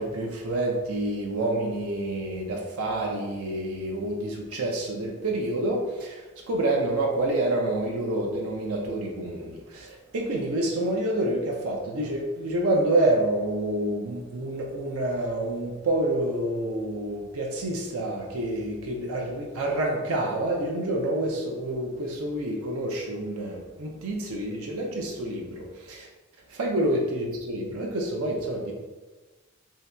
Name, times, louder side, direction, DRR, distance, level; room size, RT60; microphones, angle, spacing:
voice 1, 0.0-26.1 26.6-28.7, right 1 dB, 90° right, 0 dB, 0.6 m, -28 dB
2.8 x 2.8 x 3.3 m, 1.2 s
head